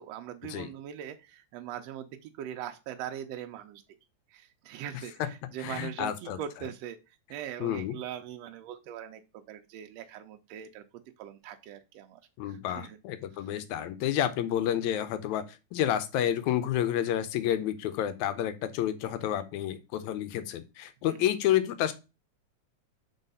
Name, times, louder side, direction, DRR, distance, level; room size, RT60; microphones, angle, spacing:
voice 1, 0.0-3.8 4.3-7.0 7.3-13.0 21.1-21.2, right 10 dB, 75° right, 6 dB, 1.6 m, -41 dB
voice 2, 5.6-6.4 7.6-8.0 12.4-21.9, left 11 dB, 80° left, 11 dB, 2.0 m, -30 dB
4.5 x 4.0 x 5.3 m, 0.28 s
omnidirectional pair, 3.3 m